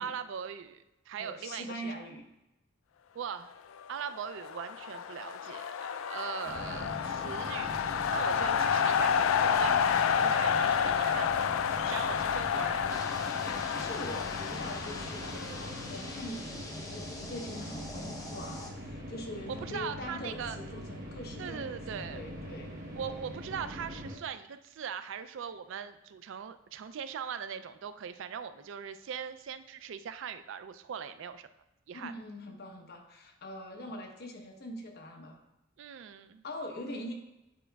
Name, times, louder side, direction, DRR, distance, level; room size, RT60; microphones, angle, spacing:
voice 1, 0.0-2.0 3.1-3.5 3.9-13.1 19.5-20.6 21.4-22.2 23.0-31.5 31.9-32.1 33.8-33.9 35.8-36.4, right 7 dB, 65° right, 12 dB, 0.3 m, -40 dB
voice 2, 1.2-2.2 13.4-16.5 16.9-21.7 22.1-22.7 31.9-35.4 36.4-37.1, left 1 dB, 55° left, 2 dB, 1.0 m, -42 dB
sound 1, 4.2-16.1, left 7 dB, 80° left, 0.3 m, -30 dB
sound 2, 6.4-24.2, equal, 45° right, 1.0 m, -42 dB
sound 3, 12.9-18.7, left 1 dB, 15° left, 0.7 m, -44 dB
8.3 x 4.9 x 2.3 m, 0.93 s
head